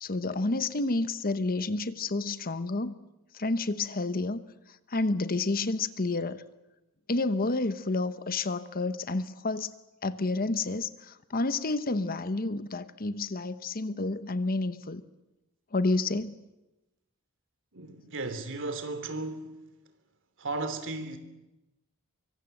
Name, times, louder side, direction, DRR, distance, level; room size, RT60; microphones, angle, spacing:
voice 1, 0.0-2.9 3.3-4.4 4.9-6.4 7.1-9.7 10.0-15.0 15.7-16.3, left 2 dB, 40° left, 1.0 m, -30 dB
voice 2, 17.7-19.6 20.4-21.2, right 2 dB, 60° right, 2.9 m, -35 dB
24.0 x 24.0 x 7.8 m
head